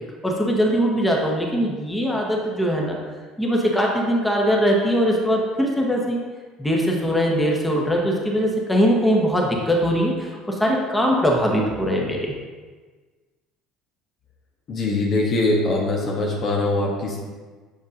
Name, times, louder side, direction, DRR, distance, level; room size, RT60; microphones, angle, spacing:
voice 1, 0.2-3.0 3.4-6.2 6.6-12.3, equal, 10° left, -1 dB, 1.2 m, -21 dB
voice 2, 14.7-17.2, left 2 dB, 45° left, -1 dB, 1.0 m, -22 dB
6.9 x 5.2 x 2.7 m, 1.4 s
hypercardioid pair, 60°, 0 cm